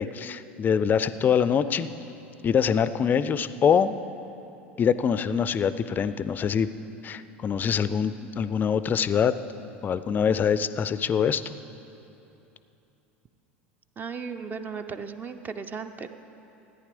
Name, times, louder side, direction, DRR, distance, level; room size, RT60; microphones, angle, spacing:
voice 1, 0.0-1.9 2.4-3.9 4.8-6.7 7.0-9.3 9.8-11.5, left 7 dB, 25° left, 14 dB, 0.4 m, -24 dB
voice 2, 14.0-16.1, right 5 dB, 25° right, 9 dB, 0.6 m, -36 dB
14.0 x 9.7 x 5.1 m, 2.9 s
figure-of-eight pair, 75°, 7 cm